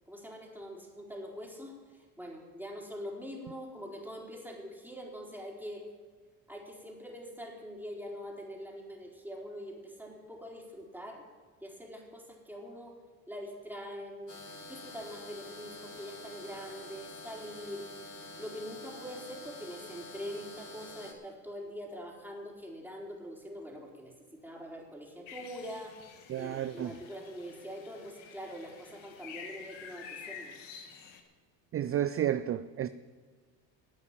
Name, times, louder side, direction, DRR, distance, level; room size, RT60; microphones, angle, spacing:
voice 1, 0.1-1.8 2.2-5.8 6.5-11.2 11.6-12.9 13.3-14.3 14.6-17.9 18.4-30.5, equal, 5° right, 4.1 m, -44 dB
sound 1, 14.3-21.1, left 2 dB, 40° left, 2.9 m, -47 dB
sound 2, 25.3-31.2, left 6 dB, 70° left, 2.0 m, -49 dB
voice 2, 26.3-27.0 31.7-32.9, right 11 dB, 30° right, 0.4 m, -31 dB
12.0 x 8.5 x 9.0 m
supercardioid pair, 80°, 49 cm